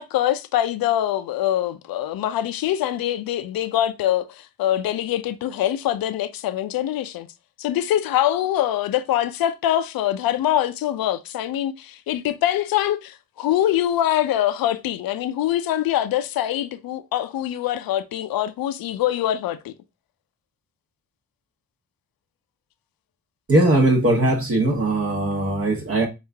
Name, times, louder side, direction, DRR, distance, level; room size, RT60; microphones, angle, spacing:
voice 1, 0.0-7.3 7.6-19.7, left 12 dB, 75° left, 0.5 m, -24 dB
voice 2, 23.5-26.1, right 1 dB, 40° right, 1.0 m, -19 dB
4.7 x 2.4 x 3.3 m
cardioid pair, 100°, 36 cm